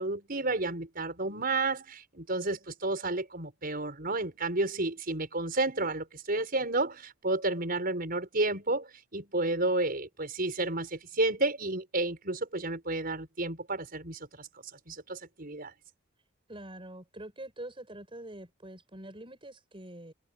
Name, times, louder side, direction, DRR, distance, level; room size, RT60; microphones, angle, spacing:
voice 1, 0.0-14.5 14.9-15.7, right 2 dB, 45° right, 6.2 m, -31 dB
voice 2, 16.5-20.1, right 1 dB, 25° right, 5.4 m, -45 dB
head